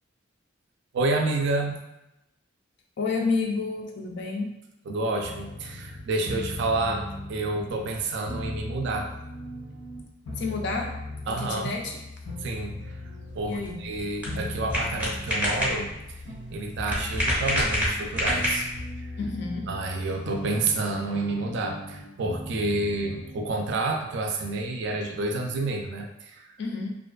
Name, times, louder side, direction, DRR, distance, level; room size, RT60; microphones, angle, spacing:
voice 1, 0.9-1.8 4.9-9.1 11.3-11.7 12.4-13.0 13.4-15.9 16.5-18.7 19.0-19.1 19.7-26.5, right 2 dB, 60° right, 3 dB, 0.3 m, -29 dB
voice 2, 3.0-4.5 10.4-10.9 11.3-12.0 13.5-13.8 19.2-19.7 26.6-27.0, left 4 dB, 60° left, 2 dB, 0.4 m, -30 dB
sound 1, 5.2-23.7, left 1 dB, 90° left, 0.9 m, -38 dB
sound 2, 13.3-18.9, equal, 10° right, 0.6 m, -28 dB
2.5 x 2.3 x 2.2 m, 0.91 s
head